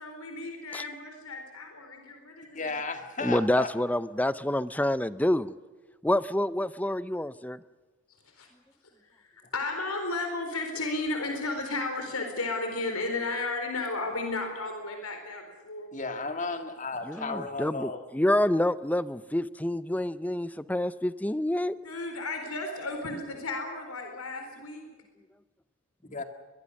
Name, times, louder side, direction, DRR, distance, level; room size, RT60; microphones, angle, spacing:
voice 1, 0.0-2.9 8.4-8.5 9.0-16.2 21.8-24.9, left 2 dB, 85° left, 4 dB, 4.2 m, -34 dB
voice 2, 2.5-3.7 15.9-18.0 26.1-26.2, left 3 dB, 35° left, 7 dB, 2.0 m, -34 dB
voice 3, 3.2-5.5 6.0-7.6 17.1-21.7, left 1 dB, 5° left, 16 dB, 0.6 m, -27 dB
22.5 x 22.5 x 6.5 m, 1.2 s
head